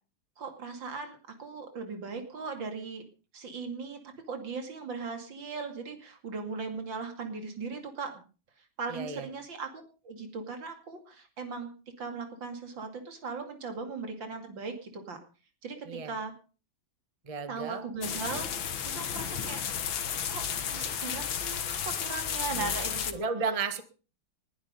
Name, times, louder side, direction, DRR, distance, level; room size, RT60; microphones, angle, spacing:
voice 1, 0.4-3.0 3.3-4.0 4.3-8.2 8.6-9.7 10.0-11.7 12.0-15.2 15.6-16.3 17.5-18.7 18.9-19.6 20.3-23.3, right 4 dB, 70° right, 6 dB, 3.1 m, -38 dB
voice 2, 8.9-9.3 15.8-16.1 17.3-17.9 22.5-22.8 23.1-23.8, right 5 dB, 20° right, 10 dB, 1.3 m, -33 dB
sound 1, 18.0-23.1, left 8 dB, 80° left, 2.1 m, -33 dB
20.5 x 11.0 x 5.2 m, 0.37 s
omnidirectional pair, 2.1 m